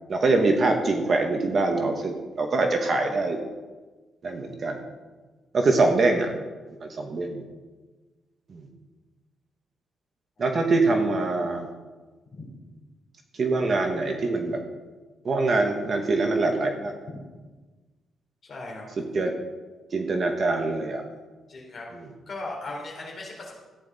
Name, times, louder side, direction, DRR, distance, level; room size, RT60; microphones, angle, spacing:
voice 1, 0.1-3.4 4.2-4.8 5.5-6.3 6.7-7.4 8.5-8.6 10.4-11.7 13.4-14.6 15.2-16.9 19.0-19.3 19.9-21.0 21.9-22.1, right 3 dB, 35° right, 4 dB, 1.0 m, -24 dB
voice 2, 18.5-18.9 21.5-21.9 22.3-23.6, left 2 dB, 35° left, -3 dB, 3.4 m, -37 dB
14.0 x 9.3 x 4.0 m, 1.3 s
cardioid pair, 175°, 0 cm